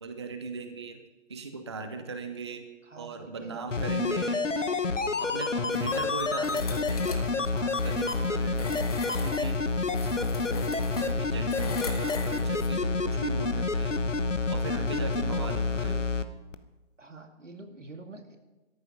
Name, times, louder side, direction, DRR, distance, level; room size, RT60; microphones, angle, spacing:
voice 1, 0.0-1.0 1.3-2.7 3.0-4.4 5.2-9.6 9.9-14.0 14.5-15.9, right 4 dB, 25° right, 8 dB, 0.6 m, -39 dB
voice 2, 2.8-4.6 5.5-6.0 14.7-15.4 15.8-16.0 17.0-18.4, right 2 dB, 85° right, 5 dB, 2.3 m, -47 dB
sound 1, 3.7-16.2 16.5-16.6, left 3 dB, 85° left, 1.1 m, -28 dB
sound 2, 5.7-12.7, left 5 dB, 30° left, 1.3 m, -41 dB
13.5 x 12.0 x 5.3 m, 1.1 s
figure-of-eight pair, 150°, 36 cm